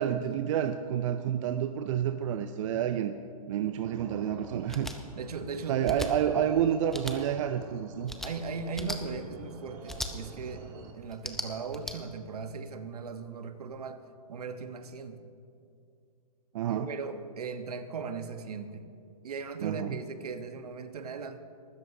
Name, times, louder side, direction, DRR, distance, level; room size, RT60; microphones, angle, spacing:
voice 1, 0.0-3.1 3.5-4.9 5.7-8.1 16.5-16.9 19.6-20.0, right 9 dB, 50° right, 9 dB, 0.6 m, -29 dB
sound 1, 3.8-10.9, right 4 dB, 35° right, 1.8 m, -47 dB
sound 2, 4.7-5.0 5.8-6.1 6.9-7.2 8.1-8.3 8.7-9.0 9.9-10.1 11.1-11.9, left 1 dB, ahead, 0.7 m, -37 dB
voice 2, 5.1-5.9 8.2-10.7 10.9-14.0 14.3-15.2 16.7-18.9 19.2-21.4, right 5 dB, 75° right, 9 dB, 1.2 m, -38 dB
23.5 x 13.0 x 2.8 m, 2.5 s
hypercardioid pair, 130°, 20 cm